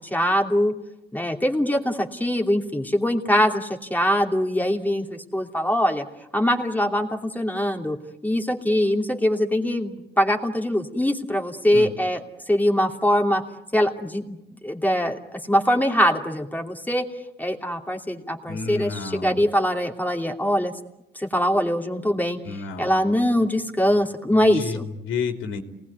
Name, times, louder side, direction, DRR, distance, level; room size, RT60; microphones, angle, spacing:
voice 1, 0.1-0.7 1.1-6.0 6.3-8.0 8.2-12.2 12.5-13.4 13.7-14.4 14.6-15.2 15.5-17.0 17.4-20.7 21.1-24.8, equal, 10° left, 3 dB, 2.8 m, -22 dB
voice 2, 18.5-19.5 22.4-22.9 24.5-25.6, left 5 dB, 85° left, 4 dB, 3.3 m, -31 dB
28.0 x 19.5 x 9.6 m, 0.90 s
cardioid pair, 90°, 20 cm